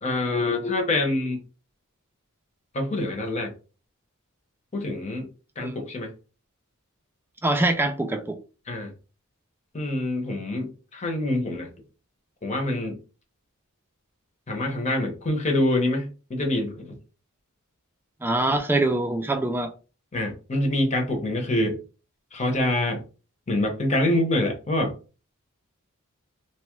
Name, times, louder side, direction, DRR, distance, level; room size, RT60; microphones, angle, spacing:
voice 1, 0.0-1.4 2.7-3.5 4.7-5.3 5.6-6.1 8.7-8.9 9.7-11.7 12.4-13.0 14.5-17.0 20.1-21.8 22.3-23.0 23.5-24.9, left 1 dB, 30° left, 0.8 m, -25 dB
voice 2, 7.4-8.4 18.2-19.7, right 2 dB, 10° right, 0.3 m, -24 dB
2.8 x 2.3 x 3.0 m
head